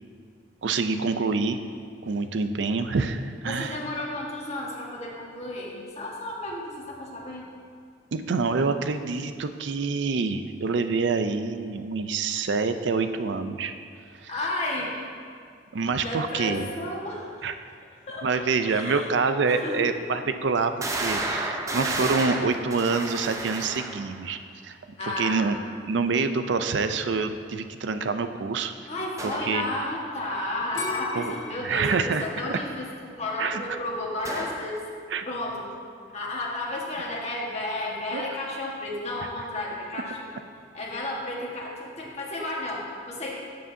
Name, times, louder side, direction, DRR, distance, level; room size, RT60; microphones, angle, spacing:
voice 1, 0.6-1.6 2.0-3.8 8.1-13.7 14.2-14.3 15.7-16.7 17.4-17.5 18.2-25.6 25.8-28.7 29.2-29.7 31.1-31.3 31.6-32.2 32.5-32.6 33.4-33.8 35.1-35.2 38.1-38.2, right 4 dB, 70° right, 9 dB, 0.5 m, -26 dB
voice 2, 3.5-7.5 14.3-15.0 16.0-17.5 18.1-19.1 19.5-20.0 25.0-25.5 28.9-34.9 35.2-35.7 36.1-40.2 40.7-43.3, left 1 dB, 35° left, -4 dB, 1.5 m, -32 dB
sound 1, 19.9-20.0 20.8-24.2 29.2-29.6 34.2-34.7, right 2 dB, 15° right, 0.6 m, -31 dB
sound 2, 30.7-33.7 34.2-34.7, left 3 dB, 80° left, 2.1 m, -37 dB
12.5 x 7.6 x 2.7 m, 2.2 s
head